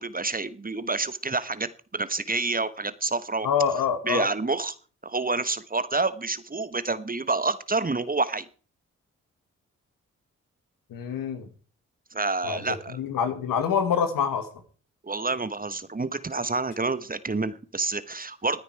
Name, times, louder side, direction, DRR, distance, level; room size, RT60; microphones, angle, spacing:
voice 1, 0.0-3.5 4.0-4.7 5.0-8.5 12.1-13.0 15.0-18.6, right 3 dB, 25° right, 15 dB, 1.2 m, -28 dB
voice 2, 3.4-4.3 10.9-11.5 12.4-14.5, left 7 dB, 80° left, 9 dB, 1.9 m, -26 dB
17.0 x 9.7 x 4.7 m, 0.39 s
supercardioid pair, 40°, 33 cm